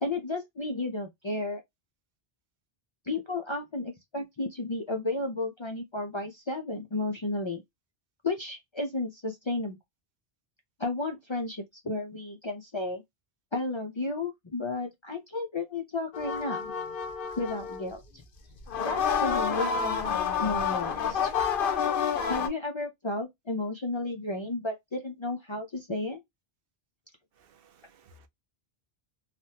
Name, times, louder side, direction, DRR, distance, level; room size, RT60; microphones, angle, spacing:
voice 1, 0.0-1.6 3.1-7.6 8.2-9.8 10.8-13.0 13.5-16.7 17.4-18.2 18.8-21.3 22.3-26.2, left 2 dB, 40° left, 0.4 m, -33 dB
sound 1, 16.1-17.9 18.6-22.5, left 7 dB, 65° left, 0.8 m, -29 dB
voice 2, 27.4-28.3, right 2 dB, 70° right, 0.7 m, -59 dB
3.3 x 2.1 x 2.7 m
omnidirectional pair, 1.0 m